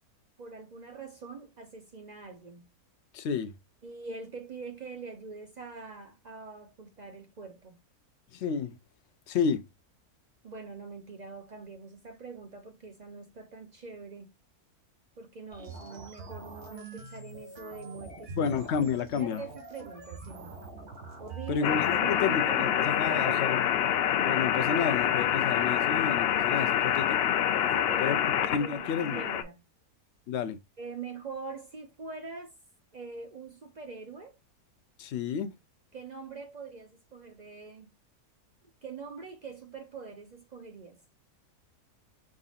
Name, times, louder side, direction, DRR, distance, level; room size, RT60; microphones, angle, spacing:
voice 1, 0.4-2.7 3.8-7.8 10.4-14.3 15.2-18.5 19.1-20.6 21.2-21.7 21.9-23.4 27.7-29.6 30.8-32.5 32.9-34.4 35.9-37.9 38.8-41.0, right 4 dB, 60° right, 0.4 m, -44 dB
voice 2, 3.1-3.5 8.3-8.8 9.3-9.6 18.3-19.4 21.5-23.8 24.1-27.3 28.0-28.2 28.5-29.2 30.3-30.6 35.0-35.5, left 6 dB, 60° left, 0.8 m, -31 dB
sound 1, 15.5-22.0, right 3 dB, 80° right, 2.3 m, -44 dB
sound 2, 21.6-29.4, left 10 dB, 85° left, 0.5 m, -26 dB
5.3 x 3.7 x 2.4 m
omnidirectional pair, 1.6 m